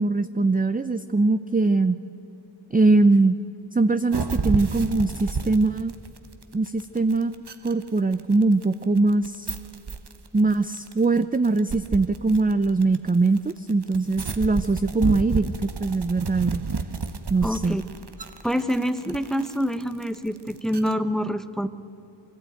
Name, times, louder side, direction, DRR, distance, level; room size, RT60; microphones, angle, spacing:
voice 1, 0.0-2.0 2.7-3.4 3.7-5.9 6.5-7.4 7.6-9.6 10.3-15.5 15.8-16.6 17.3-17.8, right 3 dB, 20° right, 11 dB, 0.5 m, -22 dB
sound 1, 4.1-20.9, right 5 dB, 60° right, 1.1 m, -31 dB
voice 2, 17.4-17.8 18.4-21.7, equal, ahead, 11 dB, 0.9 m, -26 dB
24.0 x 16.0 x 9.2 m, 2.9 s
wide cardioid pair, 45°, 45 cm